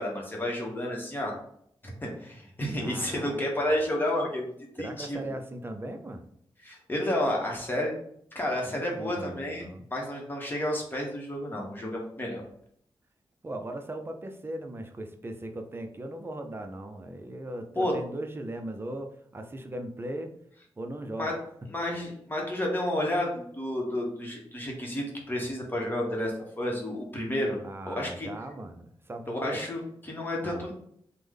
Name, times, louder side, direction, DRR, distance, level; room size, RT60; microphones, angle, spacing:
voice 1, 0.0-1.3 1.8-5.3 6.6-8.0 8.3-12.4 17.8-17.9 21.2-21.3 21.7-28.3 29.3-30.7, left 1 dB, 20° left, -1 dB, 1.0 m, -31 dB
voice 2, 2.8-3.8 4.8-6.2 8.6-9.8 13.4-20.4 20.8-21.3 27.6-29.6 30.4-30.7, right 1 dB, 25° right, 5 dB, 0.4 m, -38 dB
3.3 x 2.1 x 3.5 m, 0.69 s
wide cardioid pair, 90°, 10 cm